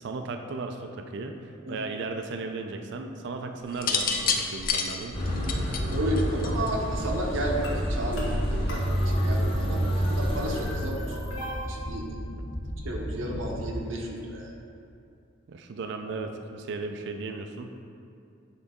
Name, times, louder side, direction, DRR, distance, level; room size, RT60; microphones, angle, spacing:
voice 1, 0.0-5.2 12.3-12.5 15.5-17.8, right 3 dB, 60° right, 5 dB, 0.4 m, -36 dB
sound 1, 3.7-6.9 8.0-8.3, left 5 dB, 45° left, 0.4 m, -28 dB
sound 2, 5.1-10.7, equal, 30° left, 1.2 m, -28 dB
voice 2, 5.9-11.2 11.7-12.1 12.8-14.5 16.0-16.1, right 1 dB, 80° right, 0 dB, 0.9 m, -32 dB
sound 3, 7.6-13.6, equal, 70° left, 1.1 m, -36 dB
7.3 x 3.9 x 3.6 m, 2.4 s
head